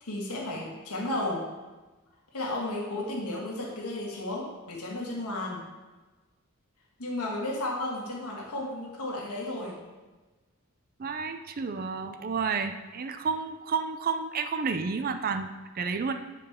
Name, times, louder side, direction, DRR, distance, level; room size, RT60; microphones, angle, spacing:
voice 1, 0.0-1.5 2.3-5.6 7.0-9.8, left 1 dB, 90° left, -2 dB, 1.7 m, -33 dB
voice 2, 11.0-16.1, right 5 dB, 40° right, 8 dB, 0.4 m, -31 dB
8.1 x 4.9 x 3.5 m, 1.2 s
head